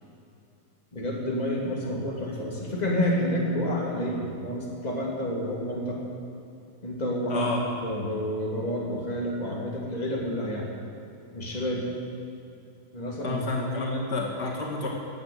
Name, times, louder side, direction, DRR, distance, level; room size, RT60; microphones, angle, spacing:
voice 1, 0.9-6.0 6.8-7.5 7.8-10.7 11.3-11.9 12.9-13.4 13.7-13.9, equal, 25° left, -3 dB, 2.8 m, -29 dB
voice 2, 7.3-7.6 13.2-14.9, left 3 dB, 75° left, -2 dB, 2.7 m, -30 dB
16.5 x 9.0 x 8.7 m, 2.6 s
omnidirectional pair, 1.8 m